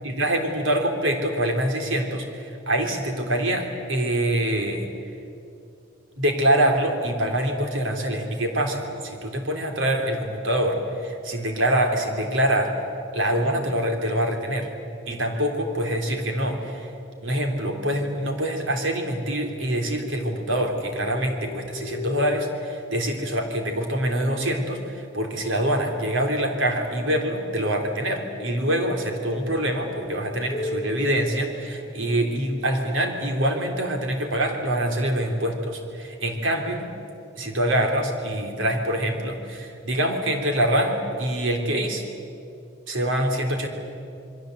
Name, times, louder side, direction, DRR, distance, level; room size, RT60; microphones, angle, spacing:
voice 1, 0.0-4.9 6.2-12.7 13.1-14.7 15.1-16.9 17.2-36.9 37.4-42.0 42.9-43.7, right 1 dB, 80° right, 3 dB, 3.5 m, -25 dB
sound 1, 19.9-23.6 28.0-32.4, left 3 dB, 40° left, 0.9 m, -37 dB
27.5 x 22.0 x 8.1 m, 2.6 s
head